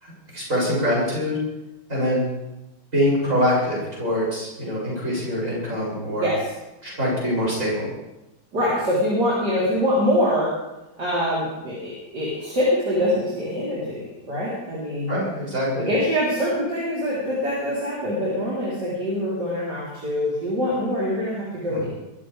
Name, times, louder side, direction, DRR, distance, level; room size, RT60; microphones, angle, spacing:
voice 1, 0.0-1.4 1.9-2.3 2.9-6.3 6.8-7.9 15.1-15.9 21.7-21.9, equal, 40° right, -5 dB, 7.7 m, -24 dB
voice 2, 8.5-10.5 11.0-15.2 15.8-21.9, equal, 55° right, -8 dB, 4.6 m, -24 dB
22.5 x 14.0 x 3.5 m, 0.96 s
omnidirectional pair, 2.2 m